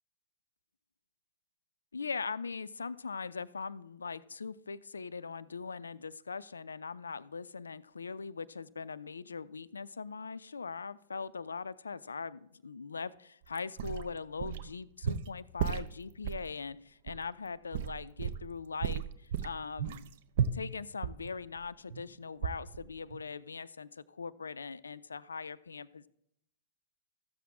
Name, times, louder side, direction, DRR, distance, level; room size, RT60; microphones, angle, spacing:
voice 1, 1.9-20.1 20.5-26.1, left 5 dB, 75° left, 19 dB, 0.4 m, -41 dB
sound 1, 13.5-14.7 15.0-16.5 17.1-17.2 17.7-18.5 18.8-22.1 22.4-22.9 23.1-23.2, right 8 dB, 55° right, 0.6 m, -34 dB
14.0 x 7.5 x 3.6 m, 0.75 s
figure-of-eight pair, 100°, 0 cm